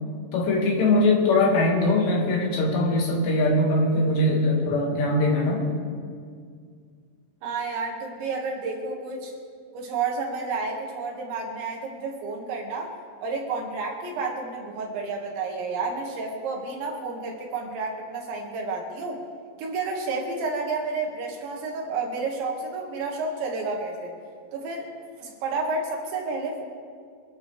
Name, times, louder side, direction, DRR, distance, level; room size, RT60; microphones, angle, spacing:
voice 1, 0.3-5.6, left 2 dB, 70° left, -1 dB, 4.2 m, -21 dB
voice 2, 7.4-9.3 9.7-12.9 13.2-19.2 19.6-24.1 24.5-24.9 25.2-26.6, right 3 dB, 75° right, 0 dB, 4.2 m, -30 dB
25.0 x 13.5 x 3.4 m, 2.1 s
omnidirectional pair, 5.3 m